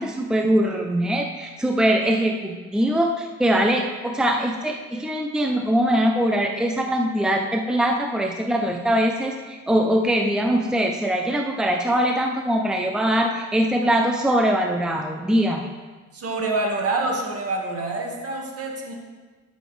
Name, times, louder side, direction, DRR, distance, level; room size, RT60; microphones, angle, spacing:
voice 1, 0.0-15.7, equal, ahead, 2 dB, 0.7 m, -22 dB
voice 2, 16.1-18.9, right 2 dB, 50° right, 0 dB, 1.9 m, -26 dB
12.5 x 6.3 x 3.4 m, 1.3 s
cardioid pair, 90°, 30 cm